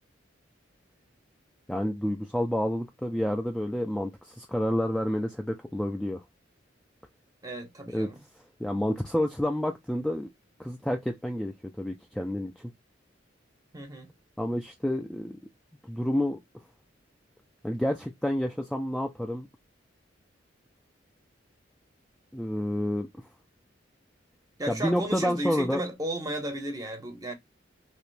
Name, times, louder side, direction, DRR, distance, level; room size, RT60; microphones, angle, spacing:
voice 1, 1.7-6.2 7.9-8.1 8.6-10.3 10.6-12.7 14.4-15.4 15.8-16.4 17.6-19.5 22.3-23.3 24.7-25.8, equal, 5° left, 0.3 m, -29 dB
voice 2, 7.4-8.2 13.7-14.1 24.6-27.3, right 1 dB, 20° right, 0.7 m, -34 dB
2.9 x 2.5 x 3.1 m
head